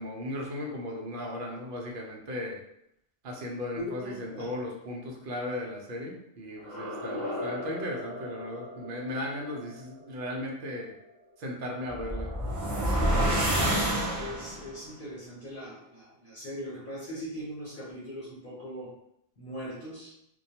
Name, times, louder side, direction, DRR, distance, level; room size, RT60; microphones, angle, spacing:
voice 1, 0.0-2.6 3.2-10.9 11.4-12.3, left 1 dB, 60° right, -1 dB, 0.7 m, -36 dB
voice 2, 3.7-4.5 12.8-18.9 19.4-20.1, equal, 55° left, -8 dB, 0.9 m, -40 dB
sound 1, 6.5-11.4, left 1 dB, 10° left, 0.8 m, -39 dB
sound 2, 11.9-14.7, right 1 dB, 25° right, 0.4 m, -27 dB
2.2 x 2.2 x 2.7 m, 0.76 s
omnidirectional pair, 1.1 m